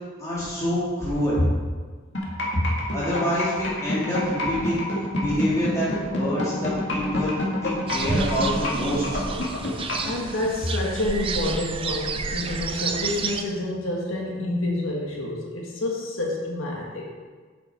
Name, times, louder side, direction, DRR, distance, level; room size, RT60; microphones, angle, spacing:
voice 1, 0.2-1.4 2.9-4.8 5.2-7.3 7.6-9.0, equal, 15° left, -9 dB, 2.8 m, -26 dB
sound 1, 2.1-10.1, left 1 dB, 65° left, 1.8 m, -27 dB
voice 2, 2.2-2.8 10.0-17.0, left 1 dB, 85° left, -2 dB, 1.5 m, -27 dB
sound 2, 7.9-13.4, right 4 dB, 25° right, 0.4 m, -30 dB
7.7 x 7.2 x 4.6 m, 1.5 s
head